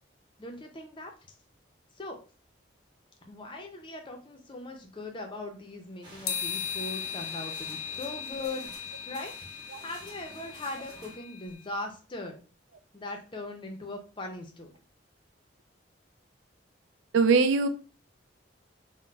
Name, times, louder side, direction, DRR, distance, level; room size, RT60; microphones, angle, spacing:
voice 1, 0.4-1.1 1.9-2.2 3.3-9.3 9.8-12.4 12.9-14.7, left 2 dB, 25° left, 3 dB, 0.5 m, -40 dB
sound 1, 6.0-11.2, right 1 dB, 25° right, 1.0 m, -49 dB
sound 2, 6.3-11.6, left 8 dB, 80° left, 0.5 m, -38 dB
voice 2, 17.1-17.7, right 4 dB, 75° right, 9 dB, 0.3 m, -21 dB
3.8 x 2.1 x 2.3 m, 0.37 s
head